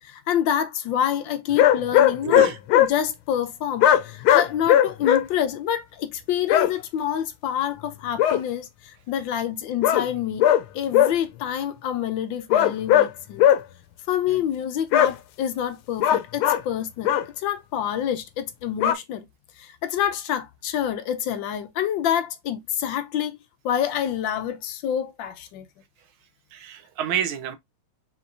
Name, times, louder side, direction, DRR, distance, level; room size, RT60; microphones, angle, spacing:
voice 1, 0.0-10.5 10.7-13.5 14.1-19.3 19.6-23.4 23.6-25.7, left 10 dB, 75° left, 1.3 m, -27 dB
sound 1, 1.6-2.9 3.8-5.2 6.5-6.7 8.2-8.4 9.8-10.1 10.4-10.6 10.9-11.1 12.5-13.1 13.4-13.6 14.9-15.1 16.0-16.6 17.0-17.2 18.8-18.9, left 11 dB, 90° left, 1.4 m, -17 dB
voice 2, 2.2-2.6 14.3-14.4 26.5-27.6, right 9 dB, 90° right, 1.7 m, -28 dB
4.4 x 3.9 x 2.6 m
omnidirectional pair, 2.2 m